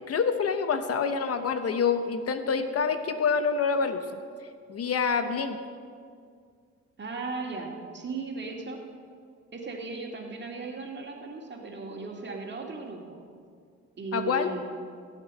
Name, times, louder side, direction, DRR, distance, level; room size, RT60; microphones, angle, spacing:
voice 1, 0.0-4.2 4.7-5.6 14.1-14.5, left 5 dB, 50° left, 9 dB, 0.9 m, -27 dB
voice 2, 7.0-8.8 9.5-13.2 14.0-14.6, right 3 dB, 35° right, 1 dB, 2.2 m, -36 dB
16.5 x 8.2 x 5.4 m, 2.2 s
cardioid pair, 90°, 30 cm